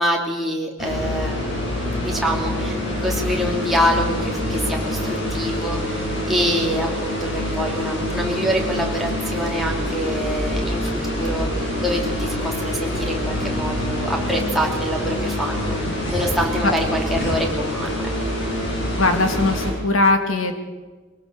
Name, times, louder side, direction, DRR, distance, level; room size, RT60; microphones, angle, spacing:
voice 1, 0.0-11.5 11.8-15.8 16.1-18.4, equal, ahead, -1 dB, 2.8 m, -26 dB
sound 1, 0.8-19.7, left 1 dB, 55° left, 7.4 m, -25 dB
voice 2, 19.0-20.6, left 2 dB, 80° left, 6 dB, 2.7 m, -20 dB
22.0 x 18.5 x 6.7 m, 1.3 s
head